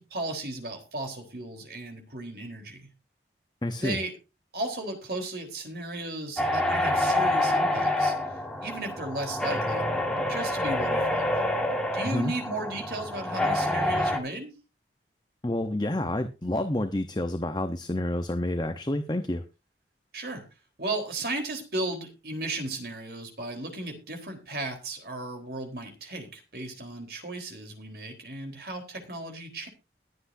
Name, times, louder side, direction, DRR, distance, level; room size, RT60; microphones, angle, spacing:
voice 1, 0.0-2.8 3.8-4.1 4.5-9.9 10.3-11.3 11.9-14.5 20.1-20.4 20.8-29.7, right 2 dB, 55° right, 4 dB, 3.9 m, -35 dB
voice 2, 3.6-4.0 12.0-12.3 15.4-19.4, left 1 dB, 25° left, 8 dB, 0.8 m, -29 dB
sound 1, 6.4-14.2, left 1 dB, 5° left, 1.8 m, -27 dB
21.5 x 8.1 x 2.7 m, 0.28 s
head